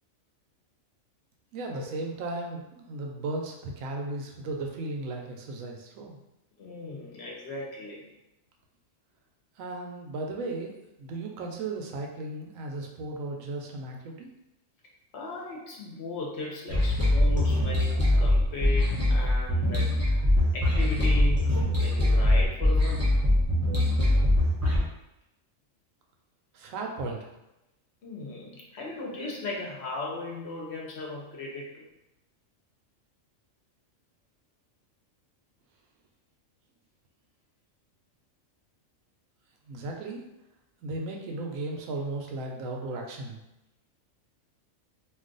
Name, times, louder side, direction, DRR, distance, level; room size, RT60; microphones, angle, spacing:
voice 1, 1.5-6.2 9.6-14.3 26.5-27.3 39.7-40.3 40.8-43.4, right 2 dB, 90° right, 1 dB, 1.0 m, -35 dB
voice 2, 6.6-8.0 15.1-20.2 20.5-23.0 28.0-31.8, left 2 dB, 60° left, -2 dB, 0.9 m, -37 dB
sound 1, 16.7-24.8, left 1 dB, 15° right, 0.5 m, -23 dB
2.5 x 2.4 x 3.8 m, 0.91 s
omnidirectional pair, 1.4 m